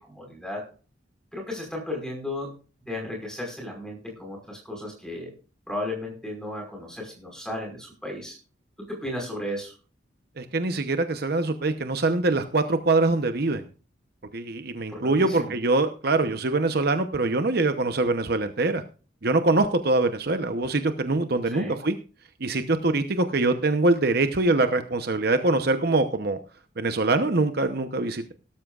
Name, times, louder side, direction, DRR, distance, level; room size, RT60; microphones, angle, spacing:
voice 1, 0.1-0.7 1.3-2.5 2.9-5.3 5.7-8.4 8.9-9.7 14.9-15.5 21.5-21.8, left 1 dB, 5° left, 1 dB, 5.3 m, -34 dB
voice 2, 10.4-13.6 14.3-18.8 19.2-22.0 22.4-26.4 26.8-28.3, right 2 dB, 55° right, 8 dB, 0.9 m, -23 dB
17.5 x 13.5 x 2.5 m, 0.36 s
head